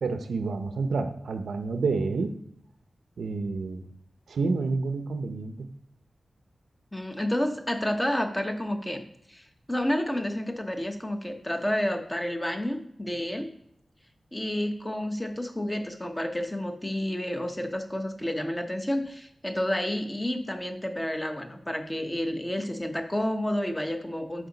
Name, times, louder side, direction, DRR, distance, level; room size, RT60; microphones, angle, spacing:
voice 1, 0.0-2.4 3.2-3.9 4.3-5.7, right 4 dB, 85° right, 7 dB, 0.6 m, -29 dB
voice 2, 6.9-9.0 9.3-13.5 14.3-24.5, left 1 dB, 10° left, 5 dB, 0.9 m, -30 dB
10.5 x 4.8 x 4.0 m, 0.74 s
wide cardioid pair, 150°, 0 cm